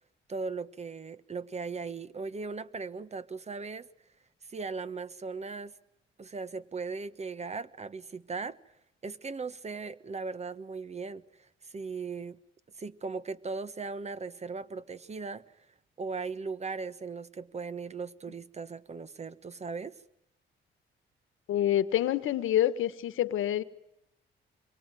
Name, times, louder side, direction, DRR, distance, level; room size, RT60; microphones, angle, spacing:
voice 1, 0.3-3.9 4.4-5.7 6.2-8.6 9.0-12.4 12.8-15.4 16.0-20.0, right 4 dB, 35° right, 1.3 m, -38 dB
voice 2, 21.5-23.6, left 12 dB, 85° left, 1.5 m, -27 dB
26.5 x 23.0 x 9.3 m
cardioid pair, 90°, 20 cm